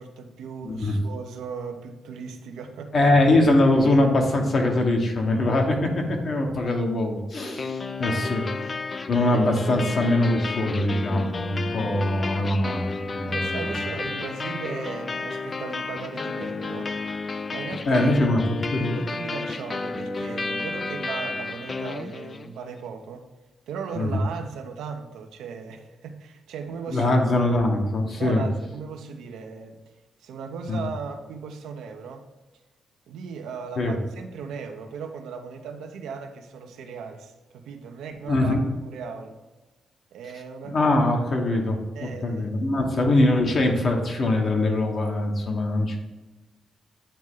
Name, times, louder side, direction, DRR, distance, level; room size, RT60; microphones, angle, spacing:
voice 1, 0.0-2.9 6.6-6.7 8.0-8.3 13.3-16.9 17.5-18.1 18.4-23.3 23.7-27.1 28.2-29.8 30.2-32.3 33.1-38.6 38.8-39.3 40.1-40.9 41.9-42.8, right 5 dB, 90° right, 4 dB, 0.7 m, -37 dB
voice 2, 0.6-0.9 2.9-8.4 9.1-13.6 17.9-18.4 18.7-19.0 24.0-24.3 26.9-28.4 30.7-30.8 33.8-34.0 38.3-38.6 40.6-46.0, left 2 dB, 50° left, 2 dB, 1.2 m, -22 dB
sound 1, 7.6-22.6, left 3 dB, 35° left, 0.3 m, -32 dB
8.9 x 3.1 x 3.7 m, 1.2 s
cardioid pair, 85°, 0 cm